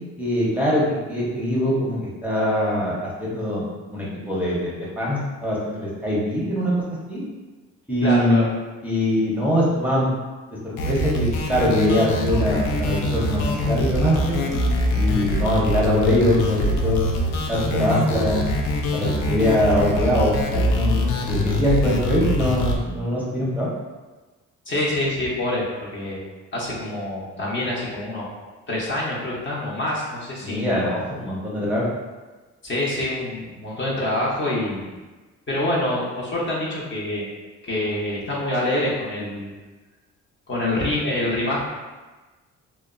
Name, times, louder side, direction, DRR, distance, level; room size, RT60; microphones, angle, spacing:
voice 1, 0.0-3.6 3.9-6.7 7.1-7.2 7.9-8.5 8.8-10.1 10.6-14.4 14.9-17.0 17.5-18.5 18.9-23.7 30.4-31.8, left 1 dB, 5° right, -7 dB, 0.6 m, -22 dB
voice 2, 8.0-8.5 24.7-26.2 26.5-28.3 28.7-30.7 32.6-34.9 35.5-37.2 37.6-39.5 40.5-41.6, left 1 dB, 40° left, -5 dB, 0.7 m, -26 dB
sound 1, 10.8-22.8, left 1 dB, 80° left, 0.5 m, -23 dB
2.8 x 2.0 x 2.4 m, 1.2 s
cardioid pair, 90°, 30 cm